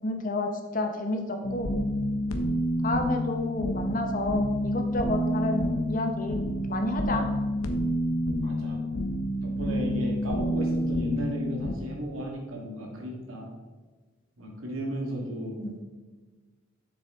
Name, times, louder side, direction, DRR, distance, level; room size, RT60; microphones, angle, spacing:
voice 1, 0.0-1.7 2.8-6.4 6.7-7.3 15.6-15.8, left 2 dB, 40° left, 4 dB, 0.9 m, -30 dB
sound 1, 1.4-11.8, equal, 90° left, 0.8 m, -28 dB
voice 2, 8.3-8.8 9.4-13.5 14.4-15.6, equal, 90° right, -1 dB, 1.9 m, -35 dB
7.1 x 6.8 x 3.7 m, 1.3 s
head